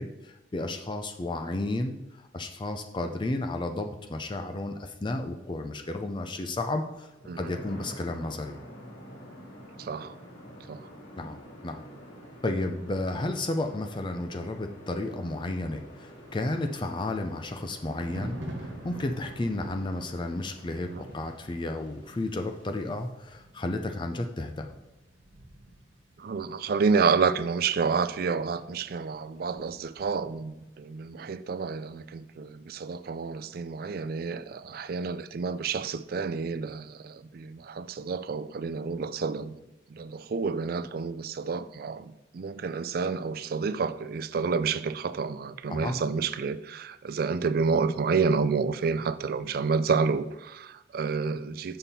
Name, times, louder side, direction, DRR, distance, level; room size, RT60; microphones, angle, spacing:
voice 1, 0.0-1.9 2.3-7.1 7.4-8.6 11.2-11.4 11.6-11.8 12.4-24.7 45.7-46.0, left 2 dB, 25° left, 0.4 m, -32 dB
sound 1, 7.1-23.0, equal, 90° left, 3.0 m, -48 dB
voice 2, 9.8-10.2 10.7-10.9 20.9-21.0 26.2-39.6 39.9-51.8, right 5 dB, 50° right, 0.4 m, -29 dB
Thunder, 16.2-30.8 31.1-31.4, right 1 dB, 85° right, 1.3 m, -47 dB
7.2 x 5.6 x 4.2 m
head